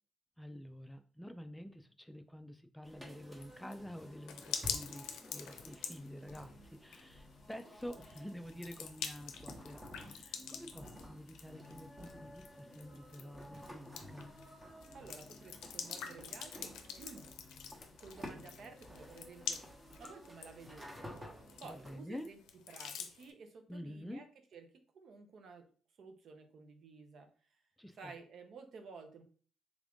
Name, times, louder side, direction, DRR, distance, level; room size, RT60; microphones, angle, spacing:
voice 1, 0.4-14.3 21.6-22.3 23.7-24.2 27.8-28.1, equal, 5° left, 8 dB, 0.3 m, -49 dB
sound 1, 2.8-22.0, equal, 15° right, 0.9 m, -53 dB
sound 2, 3.4-23.3, left 7 dB, 90° left, 0.5 m, -47 dB
voice 2, 14.9-17.3 18.0-19.6 20.0-21.1 21.6-22.4 22.7-24.3 24.5-24.7 24.9-25.7 26.0-27.6 28.0-29.2, right 4 dB, 60° right, 6 dB, 0.7 m, -53 dB
3.5 x 2.5 x 3.5 m, 0.42 s
cardioid pair, 90°, 0 cm